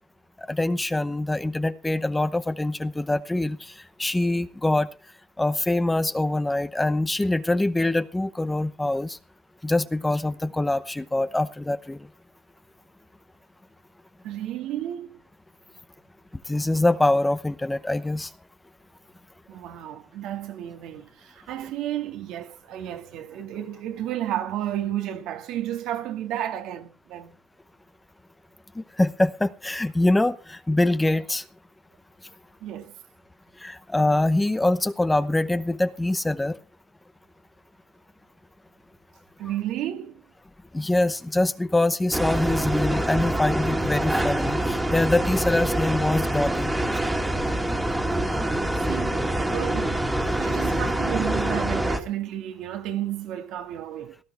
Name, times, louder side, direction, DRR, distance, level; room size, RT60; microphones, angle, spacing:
voice 1, 0.4-4.9 5.4-9.2 9.6-12.1 16.3-18.3 28.7-31.5 33.6-36.6 40.7-46.7, left 2 dB, 10° left, 0.9 m, -24 dB
voice 2, 14.2-15.2 19.5-27.3 32.6-32.9 39.4-40.2 48.1-50.0 50.4-54.2, right 12 dB, 75° right, 1.8 m, -32 dB
sound 1, 42.1-52.0, right 1 dB, 10° right, 2.2 m, -25 dB
17.5 x 13.5 x 3.4 m
cardioid pair, 115°, 0 cm